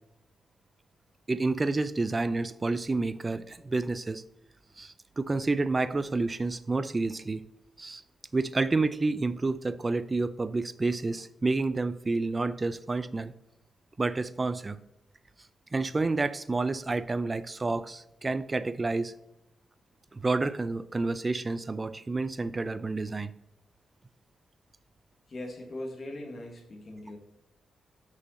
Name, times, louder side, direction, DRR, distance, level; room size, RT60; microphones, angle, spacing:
voice 1, 1.3-4.2 4.8-7.4 7.8-8.0 8.3-13.3 14.0-14.8 15.7-19.1 20.1-23.3, right 3 dB, 25° right, 14 dB, 0.5 m, -29 dB
voice 2, 25.3-27.2, left 1 dB, 40° left, 1 dB, 1.6 m, -40 dB
6.2 x 5.6 x 4.2 m, 0.88 s
cardioid pair, 95°, 0 cm